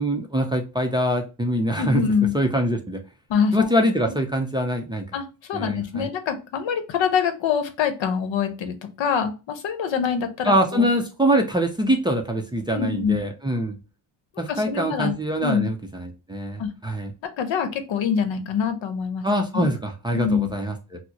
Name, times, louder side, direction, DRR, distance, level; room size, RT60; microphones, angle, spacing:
voice 1, 0.0-2.1 2.3-3.0 3.5-5.0 5.5-6.1 10.4-13.8 14.4-17.1 19.2-21.0, equal, 10° right, 2 dB, 0.4 m, -24 dB
voice 2, 1.8-2.3 3.3-3.7 5.1-10.9 12.7-13.2 14.5-15.7 16.6-16.7 17.4-19.3 19.5-19.7 20.1-20.6, left 7 dB, 75° left, 8 dB, 0.8 m, -25 dB
4.3 x 2.0 x 2.7 m, 0.30 s
cardioid pair, 115°, 46 cm